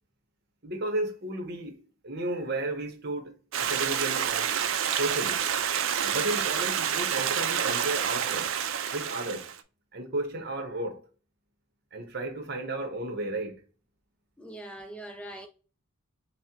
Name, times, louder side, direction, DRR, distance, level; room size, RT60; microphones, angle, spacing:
voice 1, 0.6-4.5 5.0-5.5 6.0-8.5 8.9-9.5 9.9-11.0 11.9-13.6, right 2 dB, 50° right, 0.9 m, -33 dB
Stream, 3.5-9.6, right 8 dB, 65° right, 0.4 m, -28 dB
voice 2, 14.4-15.5, right 1 dB, 5° left, 0.4 m, -42 dB
6.0 x 2.1 x 2.9 m
head